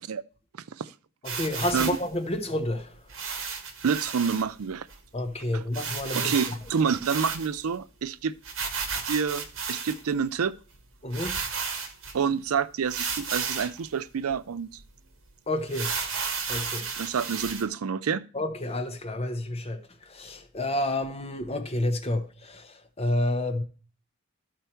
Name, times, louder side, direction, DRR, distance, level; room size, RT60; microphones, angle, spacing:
voice 1, 1.2-2.9 5.1-6.3 11.0-11.4 15.5-15.9 16.5-16.8 18.3-19.8 20.1-23.6, left 1 dB, 30° left, 1.0 m, -29 dB
sound 1, 1.2-2.1 3.1-4.4 4.9-5.0 5.2-5.3 5.7-7.7 8.4-10.1 10.7-10.8 11.1-12.2 12.9-13.8 14.3-14.4 14.8-14.9 15.7-17.6, right 5 dB, 65° right, 1.3 m, -33 dB
voice 2, 3.8-4.9 5.5-5.7 6.1-8.3 9.1-10.6 12.1-14.8 17.0-18.2, right 6 dB, 90° right, 0.5 m, -28 dB
12.5 x 4.6 x 4.4 m
head